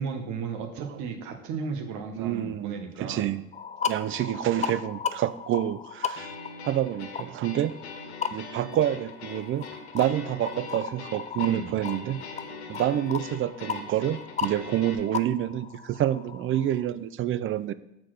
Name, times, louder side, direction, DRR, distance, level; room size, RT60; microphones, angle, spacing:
voice 1, 0.0-3.3 11.4-11.7, right 5 dB, 65° right, 4 dB, 1.4 m, -34 dB
voice 2, 2.1-3.5 3.9-6.3 6.6-7.8 8.3-9.6 9.9-12.2 12.7-17.7, right 11 dB, 40° right, 15 dB, 0.5 m, -28 dB
sound 1, 3.5-16.9, left 6 dB, 20° left, 0.5 m, -36 dB
sound 2, 6.1-14.9, left 4 dB, 85° left, 1.1 m, -42 dB
6.5 x 4.2 x 6.2 m, 0.84 s
hypercardioid pair, 70°, 32 cm